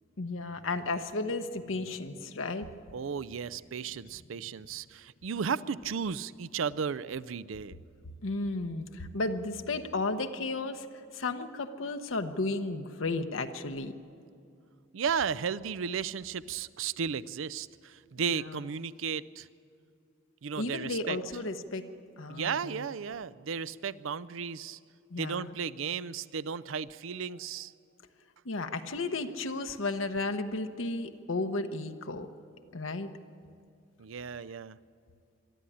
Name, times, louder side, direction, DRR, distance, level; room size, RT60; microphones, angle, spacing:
voice 1, 0.2-2.7 8.2-10.9 11.1-13.9 18.3-18.6 20.5-21.8 22.2-22.8 25.1-25.5 28.4-32.3 32.7-33.1, left 3 dB, 75° left, 7 dB, 0.9 m, -33 dB
voice 2, 2.9-7.8 14.9-19.5 20.4-21.2 22.3-24.8 25.2-27.7 34.0-34.8, right 6 dB, 80° right, 18 dB, 0.5 m, -34 dB
22.0 x 13.0 x 10.0 m, 2.4 s
head